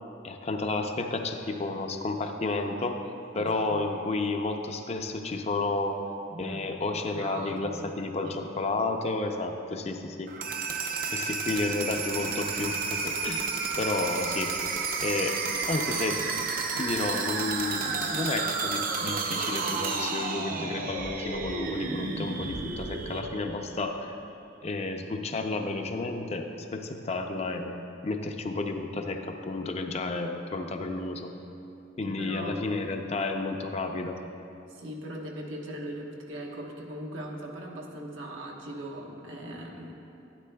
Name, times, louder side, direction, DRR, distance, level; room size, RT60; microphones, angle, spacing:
voice 1, 0.2-3.0 3.3-6.0 6.4-10.3 11.1-13.5 13.8-14.5 15.0-15.4 15.7-16.2 16.8-24.2 24.6-27.8 28.0-31.3 32.0-34.2, left 3 dB, 35° left, 5 dB, 0.5 m, -31 dB
voice 2, 3.3-3.7 6.3-6.8 7.1-7.8 8.2-8.4 32.0-32.6 34.7-39.9, right 1 dB, 90° right, -1 dB, 1.2 m, -39 dB
sound 1, 10.3-24.1, right 4 dB, 45° right, 0.6 m, -31 dB
11.5 x 9.8 x 2.2 m, 2.8 s
head